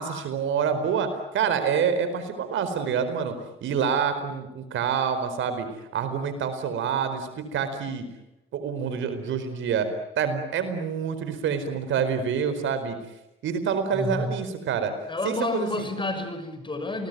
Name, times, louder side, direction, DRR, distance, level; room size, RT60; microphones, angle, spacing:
voice 1, 0.0-3.3 3.6-5.7 5.9-8.1 8.5-9.9 10.2-13.0 13.4-14.9 15.2-15.9, right 7 dB, 75° right, 10 dB, 4.6 m, -27 dB
voice 2, 13.9-14.3 15.1-17.1, left 2 dB, 25° left, 8 dB, 6.5 m, -30 dB
29.5 x 20.5 x 9.4 m, 0.93 s
cardioid pair, 90°, 20 cm